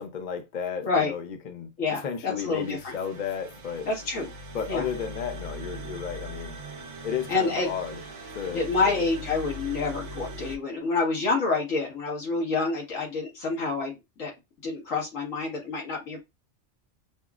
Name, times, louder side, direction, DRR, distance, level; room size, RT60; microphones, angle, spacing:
voice 1, 0.0-3.9 4.5-6.6 7.0-8.0 8.3-9.0, left 7 dB, 45° left, 0.6 m, -33 dB
voice 2, 1.8-2.9 3.9-4.3 4.7-4.9 7.3-7.7 8.5-14.3 14.6-16.3, left 3 dB, 85° left, 1.7 m, -28 dB
sound 1, 2.4-10.6, right 1 dB, 70° right, 0.9 m, -40 dB
5.3 x 2.0 x 2.4 m
omnidirectional pair, 1.3 m